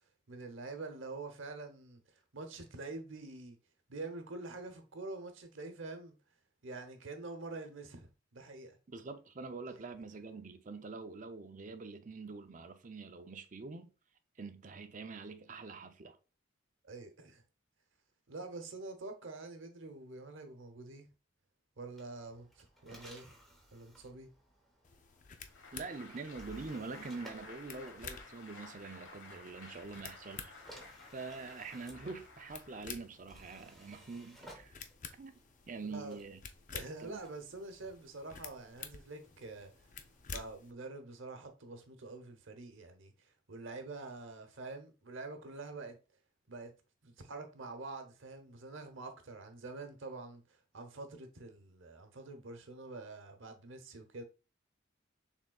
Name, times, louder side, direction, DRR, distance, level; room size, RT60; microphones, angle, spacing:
voice 1, 0.3-2.0 2.3-3.6 3.9-6.1 6.6-8.8 9.7-9.9 16.8-17.4 18.3-21.1 21.8-23.3 23.7-24.3 35.9-36.2 36.7-39.7 40.3-46.0 46.5-46.7 47.0-54.2, right 3 dB, 70° right, 0.9 m, -46 dB
voice 2, 8.9-13.9 14.4-16.2 25.7-34.8 35.2-35.3 35.7-36.4 37.0-37.2, right 4 dB, 40° right, 0.5 m, -45 dB
sound 1, 21.9-28.8 29.8-40.4, equal, ahead, 1.0 m, -59 dB
sound 2, 24.8-40.7, left 6 dB, 40° left, 0.5 m, -51 dB
Applause, 25.4-33.2, left 3 dB, 65° left, 1.3 m, -54 dB
6.3 x 3.5 x 2.3 m
head